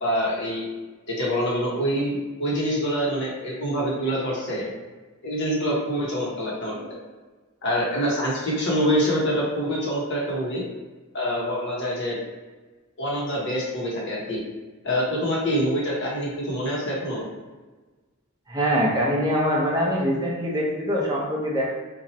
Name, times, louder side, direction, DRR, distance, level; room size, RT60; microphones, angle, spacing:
voice 1, 0.0-0.7 1.1-4.7 5.2-7.0 7.6-10.6 11.1-12.2 13.0-14.4 14.8-17.3, equal, 55° left, -4 dB, 1.1 m, -25 dB
voice 2, 18.5-21.7, equal, 20° right, -5 dB, 0.7 m, -23 dB
2.8 x 2.5 x 4.1 m, 1.3 s
head